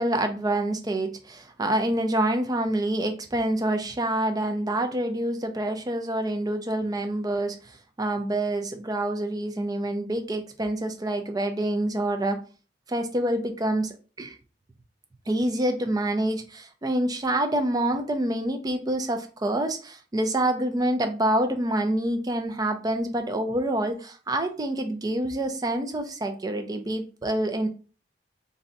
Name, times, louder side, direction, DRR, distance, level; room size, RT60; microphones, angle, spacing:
voice 1, 0.0-7.6 8.0-12.4 12.9-14.4 15.3-27.7, right 1 dB, 20° right, 6 dB, 0.4 m, -27 dB
2.6 x 2.2 x 3.8 m, 0.35 s
head